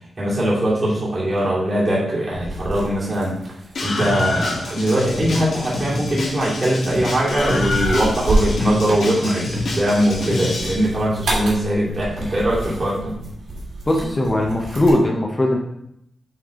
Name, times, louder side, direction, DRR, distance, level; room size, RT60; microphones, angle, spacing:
voice 1, 0.2-3.4 3.8-13.2, right 1 dB, 40° right, -7 dB, 2.4 m, -21 dB
sound 1, 2.3-14.9, right 1 dB, 85° right, 1.9 m, -30 dB
Screaming, 3.8-10.7, left 2 dB, 80° left, 1.6 m, -26 dB
voice 2, 13.9-15.6, left 1 dB, 25° left, 0 dB, 0.9 m, -19 dB
7.9 x 3.3 x 3.7 m, 0.76 s
wide cardioid pair, 105°, 0 cm